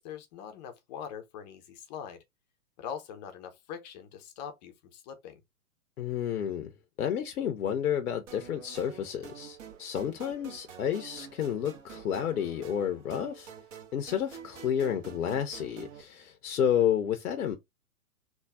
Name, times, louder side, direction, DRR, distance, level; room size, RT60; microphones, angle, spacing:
voice 1, 0.0-2.2 2.8-5.4 16.8-16.9, left 8 dB, 30° left, 0.6 m, -42 dB
voice 2, 6.0-6.7 7.0-13.5 13.9-17.6, left 9 dB, 75° left, 0.7 m, -30 dB
sound 1, 8.3-16.0, right 8 dB, 55° right, 1.1 m, -47 dB
3.5 x 2.2 x 3.2 m
hypercardioid pair, 115°, 45 cm